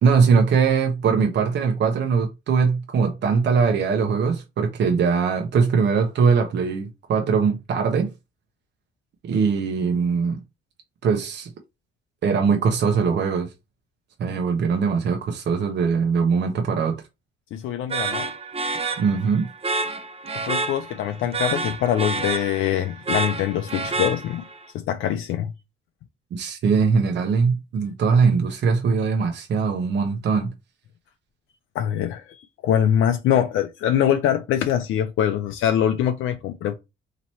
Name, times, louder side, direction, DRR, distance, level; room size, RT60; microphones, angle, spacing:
voice 1, 0.0-8.1 9.2-10.4 11.0-11.5 12.2-13.5 14.2-17.0 19.0-19.5 26.3-30.5, right 5 dB, 60° right, 0.9 m, -21 dB
voice 2, 17.5-18.3 20.4-24.4 24.7-25.5 31.7-36.8, left 10 dB, 80° left, 0.5 m, -23 dB
sound 1, 17.9-24.6, right 3 dB, 30° right, 0.7 m, -29 dB
3.0 x 2.9 x 4.2 m
cardioid pair, 90°, 20 cm